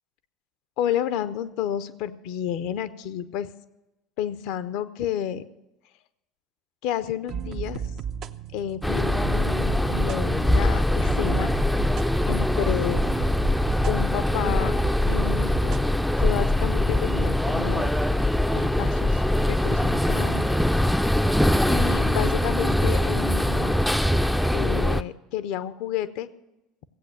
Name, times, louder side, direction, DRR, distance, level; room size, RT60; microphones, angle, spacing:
voice 1, 0.8-3.5 4.2-5.4 6.8-7.8 8.5-11.5 12.3-13.4 13.9-14.8 15.1-15.7 16.2-17.9 18.5-20.8 21.7-23.8 24.5-26.3, left 10 dB, 60° left, 15 dB, 0.7 m, -30 dB
sound 1, 7.3-15.8, right 7 dB, 50° right, 0.6 m, -34 dB
sound 2, 8.8-25.0, left 1 dB, ahead, 0.5 m, -23 dB
15.5 x 8.2 x 6.7 m, 0.95 s
figure-of-eight pair, 65°, 0 cm